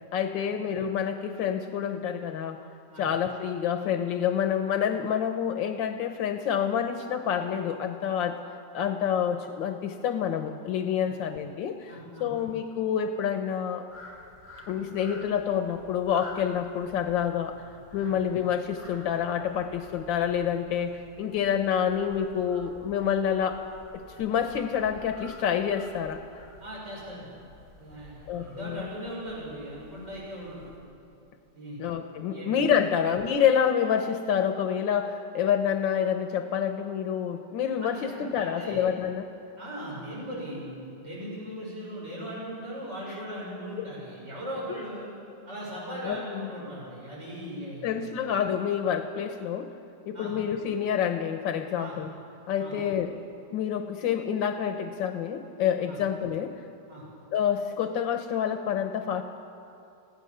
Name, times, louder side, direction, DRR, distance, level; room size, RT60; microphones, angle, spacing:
voice 1, 0.1-2.7 3.0-8.4 8.7-11.9 12.2-13.8 14.7-17.6 17.9-23.6 23.9-26.2 28.3-28.9 31.8-39.3 43.8-43.9 46.0-46.5 47.8-49.7 50.1-52.1 52.5-53.1 53.5-56.5 57.3-59.2, left 8 dB, 90° left, 6 dB, 1.6 m, -28 dB
voice 2, 11.9-12.3 18.0-18.1 26.6-27.3 27.7-30.7 31.5-31.8 32.3-32.5 32.8-33.0 37.8-38.8 39.6-45.1 45.5-48.1 50.1-50.3 51.8-52.0 52.6-52.8 55.9-56.0 56.9-57.0, equal, 40° right, -6 dB, 6.6 m, -39 dB
sound 1, 13.9-30.8, left 2 dB, 5° left, 6.9 m, -51 dB
27.5 x 16.0 x 6.7 m, 2.7 s
omnidirectional pair, 2.0 m